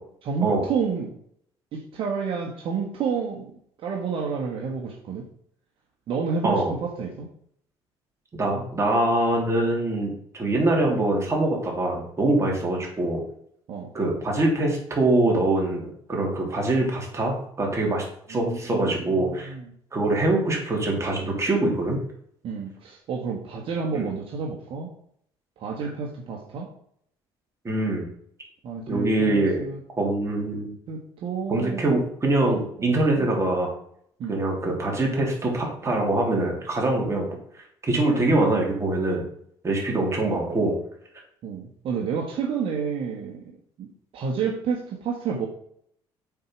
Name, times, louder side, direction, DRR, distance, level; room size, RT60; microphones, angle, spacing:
voice 1, 0.2-1.1 1.7-5.3 6.1-7.3 13.7-13.9 18.3-19.7 22.4-24.9 25.6-26.7 28.6-29.8 30.9-31.8 32.4-33.3 34.2-34.4 41.4-43.5 43.8-43.9 44.1-45.5, right 6 dB, 60° right, 0 dB, 1.4 m, -30 dB
voice 2, 6.4-6.7 8.4-13.2 13.9-19.5 19.9-22.0 23.9-24.1 27.6-28.0 28.9-29.6 30.0-30.7 31.5-33.7 34.3-37.3 37.8-39.2 39.6-40.7, right 2 dB, 30° right, -1 dB, 3.4 m, -24 dB
7.6 x 4.5 x 6.0 m, 0.67 s
supercardioid pair, 85°, 10 cm